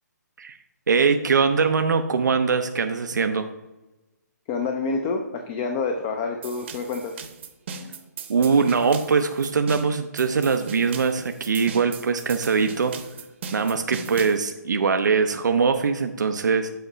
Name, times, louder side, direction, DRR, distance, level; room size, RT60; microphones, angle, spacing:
voice 1, 0.9-3.5 8.3-13.0 13.5-16.7, right 5 dB, 80° right, 7 dB, 0.6 m, -22 dB
voice 2, 4.5-7.2, left 4 dB, 20° left, 5 dB, 0.5 m, -27 dB
sound 1, 6.4-14.4, right 5 dB, 40° right, 0.9 m, -38 dB
8.0 x 4.5 x 5.0 m, 1.1 s
hypercardioid pair, 160°, 10 cm